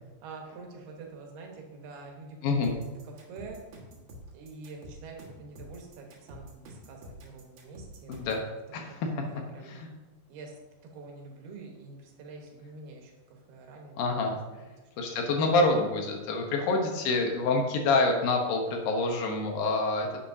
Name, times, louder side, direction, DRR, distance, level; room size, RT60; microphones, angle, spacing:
voice 1, 0.2-2.7 3.0-3.6 4.3-8.4 8.7-8.8 9.1-9.8 10.3-10.6 10.9-14.7, right 3 dB, 90° right, 1 dB, 3.4 m, -46 dB
sound 1, 2.6-8.5, equal, 55° right, 2.7 m, -48 dB
voice 2, 8.1-8.4 8.7-9.2 9.7-9.9 14.0-14.3 15.0-20.2, left 3 dB, 75° left, 2 dB, 2.7 m, -27 dB
10.5 x 8.6 x 2.7 m, 1.2 s
omnidirectional pair, 4.4 m